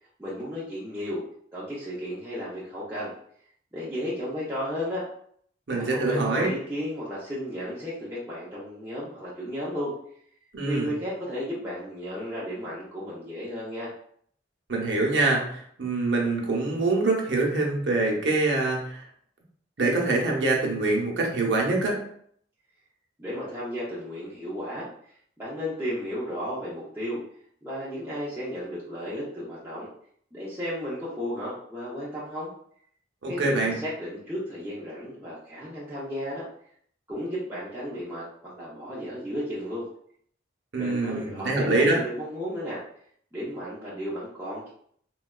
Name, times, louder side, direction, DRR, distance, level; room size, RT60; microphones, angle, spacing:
voice 1, 0.2-1.2 1.5-3.1 3.7-5.0 5.7-9.9 10.6-13.9 23.2-24.9 25.4-27.2 27.6-29.9 30.3-32.5 33.3-36.4 37.1-38.2 38.5-39.9 40.8-42.8 43.3-44.7, equal, 10° right, -9 dB, 0.6 m, -34 dB
voice 2, 5.7-6.5 10.5-10.9 14.7-19.0 19.8-22.0 33.2-33.7 40.7-42.0, right 2 dB, 75° right, -1 dB, 0.8 m, -24 dB
3.9 x 2.2 x 2.3 m, 0.63 s
head